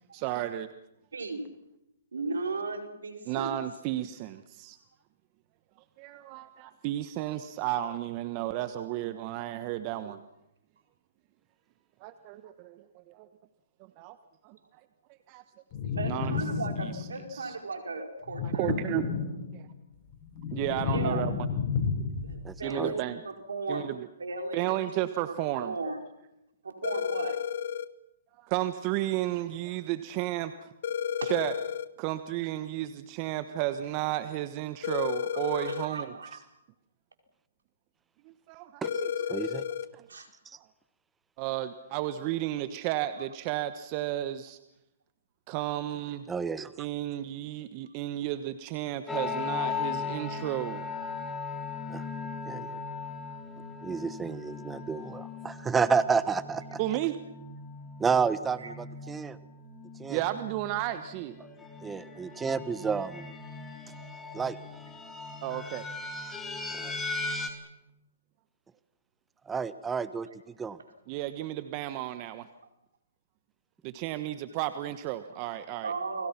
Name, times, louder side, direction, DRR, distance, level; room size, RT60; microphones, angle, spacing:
voice 1, 0.1-0.7 3.2-4.8 6.0-10.2 12.0-13.3 14.0-14.2 14.4-14.6 15.3-15.4 16.1-16.4 16.8-17.5 18.4-19.1 19.5-19.6 20.5-21.3 22.6-23.2 23.7-24.1 24.5-25.7 28.4-30.7 31.2-31.5 32.0-36.1 38.5-39.1 41.4-44.6 45.5-46.2 46.8-50.8 56.8-57.1 60.1-61.3 65.4-65.9 71.1-72.5 73.8-75.9, right 14 dB, 35° right, 11 dB, 1.2 m, -33 dB
voice 2, 1.1-1.5 2.1-3.5 16.0-18.7 20.9-21.3 22.2-23.9 24.2-25.4 25.6-26.0 26.6-27.4 31.2-31.3 35.5-36.4 40.1-40.3 58.6-58.7 75.8-76.3, right 3 dB, 85° right, 4 dB, 4.6 m, -36 dB
sound 1, 15.7-17.3 18.3-19.8 20.1-22.5, left 5 dB, 40° left, 3.3 m, -31 dB
voice 3, 22.4-23.0 38.8-39.0 39.3-39.6 40.4-40.6 46.3-46.7 51.9-52.0 52.5-52.8 53.8-56.8 58.0-59.4 60.0-60.2 61.8-63.4 64.3-64.6 66.7-67.0 69.5-70.8, right 5 dB, 10° right, 14 dB, 1.2 m, -30 dB
sound 2, 26.8-27.9 30.8-31.9 34.8-35.9 38.8-39.9, left 8 dB, 60° left, 1.2 m, -32 dB
sound 3, 49.1-67.5, left 4 dB, 10° left, 3.5 m, -38 dB
30.0 x 21.0 x 6.0 m, 0.88 s
hypercardioid pair, 135°, 0 cm